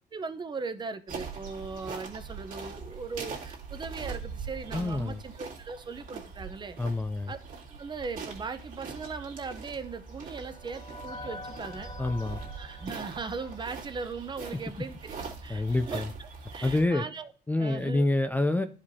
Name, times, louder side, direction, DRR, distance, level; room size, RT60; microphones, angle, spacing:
voice 1, 0.1-6.8 7.3-7.4 7.7-11.9 12.6-17.3 17.6-18.1, right 4 dB, 25° right, 0.7 m, -39 dB
sound 1, 1.1-16.9, right 5 dB, 50° right, 2.2 m, -42 dB
voice 2, 4.7-5.2 6.8-7.3 12.0-12.4 15.5-16.1 16.6-17.0 17.5-18.7, left 2 dB, 10° left, 0.4 m, -27 dB
sound 2, 9.4-14.7, left 2 dB, 35° left, 1.5 m, -47 dB
11.5 x 5.0 x 2.7 m
cardioid pair, 110°, 17 cm